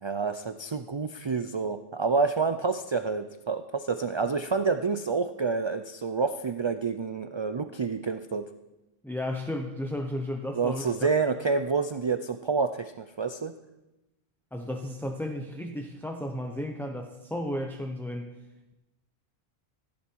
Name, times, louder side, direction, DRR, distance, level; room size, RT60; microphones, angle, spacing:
voice 1, 0.0-8.4 10.5-13.5, right 4 dB, 45° right, 9 dB, 0.3 m, -28 dB
voice 2, 9.0-10.9 14.5-18.3, left 1 dB, ahead, 4 dB, 0.6 m, -33 dB
16.0 x 10.5 x 4.6 m, 0.99 s
omnidirectional pair, 1.1 m